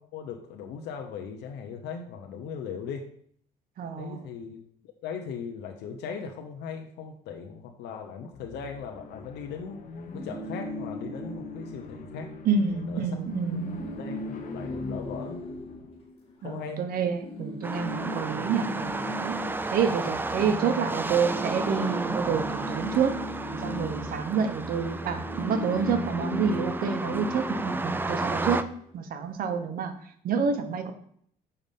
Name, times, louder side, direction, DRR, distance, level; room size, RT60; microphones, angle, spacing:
voice 1, 0.0-3.1 4.0-4.6 5.0-9.8 10.1-12.3 12.9-13.1 13.9-15.4 16.4-16.9, left 6 dB, 80° left, 2 dB, 0.9 m, -38 dB
voice 2, 3.8-4.3 12.4-13.6 16.4-19.3 19.7-23.1 23.5-28.6 28.9-29.9 30.2-30.9, right 6 dB, 60° right, 8 dB, 1.1 m, -28 dB
sound 1, 8.3-16.0, left 2 dB, 50° left, 1.2 m, -41 dB
sound 2, 10.0-12.5 12.8-13.0 13.3-16.7 17.2-20.8 21.0-28.6, left 1 dB, 35° left, 2.3 m, -39 dB
sound 3, 17.6-28.6, right 2 dB, 10° right, 0.4 m, -32 dB
7.0 x 5.3 x 5.3 m, 0.64 s
cardioid pair, 110°, 17 cm